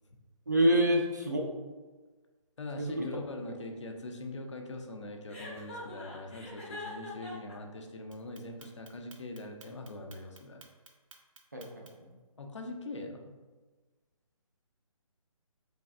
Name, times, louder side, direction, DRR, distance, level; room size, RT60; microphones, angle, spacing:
voice 1, 0.5-1.5 2.8-3.1 11.5-12.1, equal, 30° right, 0 dB, 0.3 m, -27 dB
voice 2, 2.6-10.6 12.4-13.3, left 2 dB, 55° left, 3 dB, 0.5 m, -42 dB
Chuckle chortle, 5.3-7.5, left 1 dB, 20° left, 0.7 m, -43 dB
Clock, 8.1-12.1, right 4 dB, 60° right, 0.7 m, -55 dB
4.1 x 3.3 x 2.4 m, 1.3 s
hypercardioid pair, 175°, 18 cm